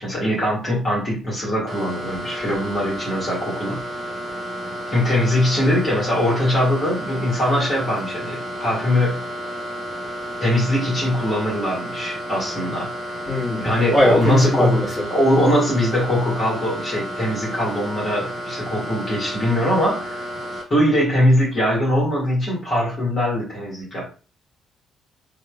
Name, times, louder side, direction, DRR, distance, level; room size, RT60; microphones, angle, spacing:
voice 1, 0.0-3.8 4.9-9.2 10.4-12.9 13.6-20.2 20.7-24.1, equal, 35° left, -6 dB, 1.3 m, -21 dB
sound 1, 1.7-20.6, equal, 35° right, 0.6 m, -31 dB
voice 2, 13.3-13.7 13.9-14.9, left 1 dB, 15° left, -6 dB, 1.4 m, -19 dB
3.0 x 2.1 x 2.2 m, 0.36 s
figure-of-eight pair, 45°, 0 cm